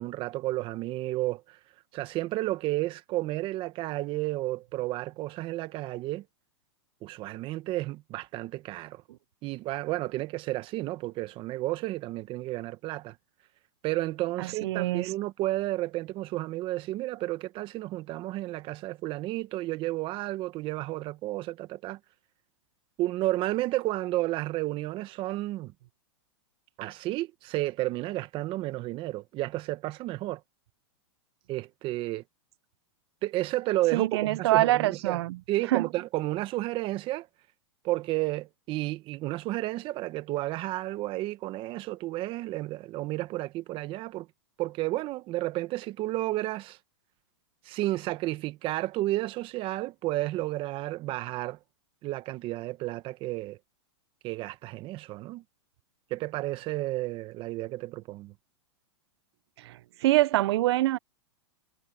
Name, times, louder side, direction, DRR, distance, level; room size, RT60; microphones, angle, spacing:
voice 1, 0.0-1.6 1.9-6.2 7.0-9.0 9.4-13.1 13.8-22.0 23.0-25.7 26.8-30.4 31.5-32.2 33.2-35.2 35.5-37.3 37.8-44.3 44.6-46.8 47.6-51.6 52.0-53.6 54.2-55.4 56.1-58.3, right 17 dB, 35° right, 1.4 m, -32 dB
voice 2, 14.4-15.1 33.9-35.4 35.7-35.9 59.7-59.8 60.0-61.0, right 16 dB, 60° right, 0.7 m, -24 dB
hypercardioid pair, 135°, 15 cm